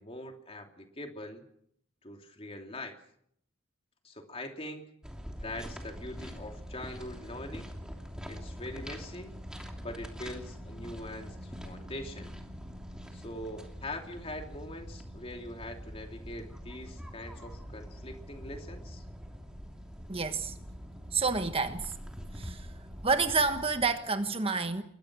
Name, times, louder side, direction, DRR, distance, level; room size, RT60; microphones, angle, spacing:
voice 1, 0.0-1.4 2.0-3.0 4.0-4.9 5.4-7.7 8.3-9.3 9.8-12.4 13.1-19.0, left 1 dB, 30° left, 2.9 m, -42 dB
sound 1, 5.0-24.0, equal, 5° right, 2.9 m, -44 dB
voice 2, 20.1-20.6 21.1-21.9 22.3-22.7 23.0-24.8, right 4 dB, 30° right, 1.3 m, -29 dB
29.0 x 22.0 x 6.2 m
head